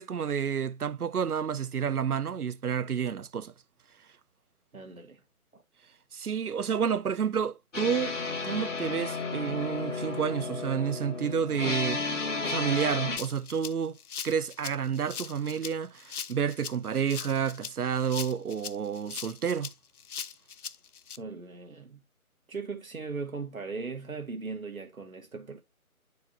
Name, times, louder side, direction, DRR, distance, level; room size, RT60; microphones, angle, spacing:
voice 1, 0.0-3.5 6.1-8.1 8.4-14.0 14.2-19.7, right 7 dB, 90° right, 0.6 m, -30 dB
voice 2, 4.7-5.2 5.5-5.6 21.2-22.0 22.5-25.6, right 4 dB, 70° right, 1.4 m, -38 dB
sound 1, 7.7-13.2, left 3 dB, 55° left, 1.4 m, -33 dB
Rattle (instrument), 13.2-21.2, left 7 dB, 80° left, 0.6 m, -40 dB
8.6 x 4.6 x 2.7 m
figure-of-eight pair, 155°, 44 cm